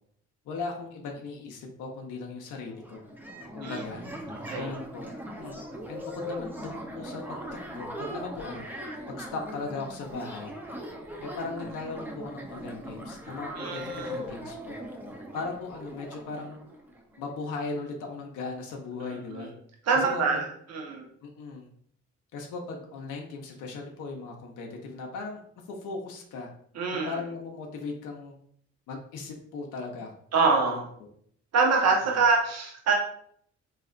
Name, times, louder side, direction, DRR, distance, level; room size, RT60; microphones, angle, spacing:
voice 1, 0.4-3.0 3.5-4.0 4.5-5.6 5.9-7.2 7.7-8.7 9.2-10.5 11.2-14.8 15.3-16.6 17.2-19.5 19.9-20.2 21.2-21.7 22.3-25.4 25.7-26.5 26.9-28.3 28.9-30.1 30.6-30.8 32.0-32.2, left 4 dB, 85° left, 0 dB, 0.7 m, -38 dB
sound 1, 2.6-17.2, equal, 5° right, 0.6 m, -40 dB
voice 2, 13.6-14.2 19.3-19.5 19.9-21.1 26.7-27.2 30.3-30.8 31.5-32.9, right 4 dB, 60° right, 0 dB, 1.0 m, -25 dB
4.1 x 2.8 x 2.4 m, 0.63 s
cardioid pair, 90°, 30 cm